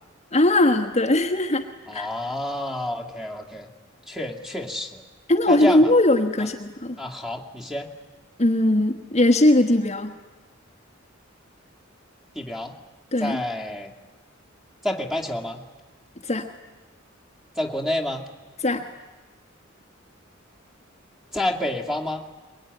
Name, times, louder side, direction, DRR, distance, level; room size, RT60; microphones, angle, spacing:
voice 1, 0.3-1.6 1.9-2.1 5.3-7.0 8.4-10.2 13.1-13.4 16.2-16.5 18.6-18.8, left 1 dB, 35° left, 3 dB, 1.2 m, -20 dB
voice 2, 1.9-3.7 4.1-5.0 5.5-5.9 7.0-7.9 12.4-12.7 13.2-13.9 14.8-15.6 17.6-18.2 21.3-22.2, left 1 dB, 5° right, 3 dB, 2.4 m, -29 dB
23.0 x 22.5 x 9.6 m, 1.2 s
head